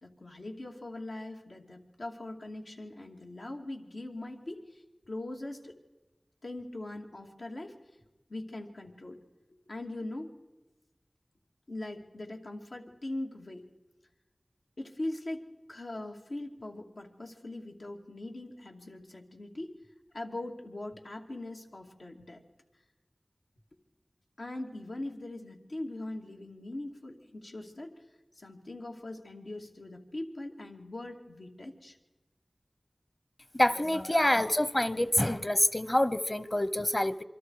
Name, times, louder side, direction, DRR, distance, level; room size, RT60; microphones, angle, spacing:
voice 1, 0.0-5.8 6.4-7.8 8.3-9.2 9.7-10.3 11.7-13.7 14.8-19.7 20.1-22.4 24.4-28.0 28.3-32.0, left 1 dB, 90° left, 0 dB, 2.6 m, -41 dB
voice 2, 33.6-37.2, left 1 dB, 30° left, 15 dB, 1.0 m, -26 dB
27.0 x 24.5 x 4.8 m, 1.1 s
wide cardioid pair, 60°, 0 cm